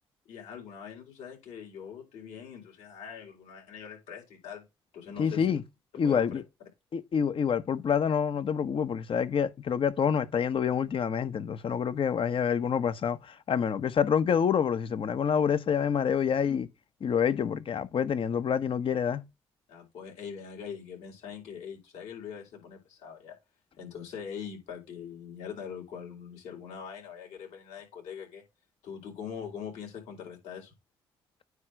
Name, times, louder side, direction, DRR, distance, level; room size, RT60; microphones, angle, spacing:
voice 1, 0.2-4.6 4.9-5.6 6.0-6.4 19.7-23.4 23.8-28.4 28.8-30.7, left 7 dB, 80° left, 4.6 m, -42 dB
voice 2, 5.2-5.6 6.0-6.4 6.9-16.7 17.0-19.2, left 7 dB, 55° left, 1.1 m, -27 dB
9.5 x 3.3 x 5.1 m
supercardioid pair, 55°, 11 cm